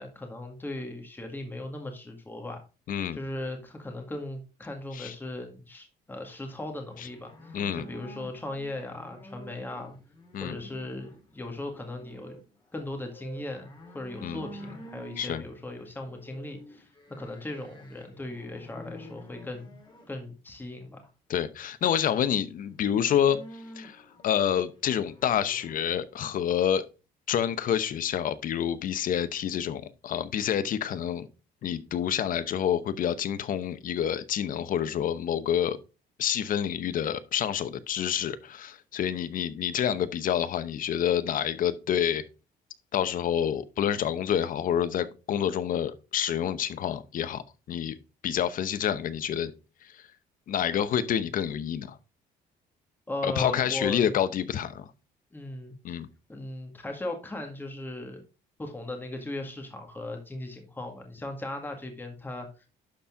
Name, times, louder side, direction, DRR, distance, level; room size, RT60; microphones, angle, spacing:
voice 1, 0.0-2.6 3.1-10.0 10.4-12.4 12.7-19.8 20.1-21.1 53.1-54.1 55.3-55.8 56.3-58.2 58.6-62.7, left 2 dB, 10° left, 1.8 m, -38 dB
voice 2, 2.9-3.2 4.9-5.1 7.5-7.8 10.3-10.6 14.2-14.4 15.2-15.4 21.3-23.4 23.8-26.8 27.3-31.3 31.6-35.8 36.2-42.2 42.9-48.0 48.2-49.5 49.9-50.0 50.5-52.0 53.2-54.9 55.8-56.1, left 9 dB, 55° left, 0.8 m, -28 dB
sound 1, 6.9-20.1 22.6-26.0, equal, 25° left, 2.5 m, -49 dB
11.5 x 4.3 x 3.6 m
cardioid pair, 110°, 17 cm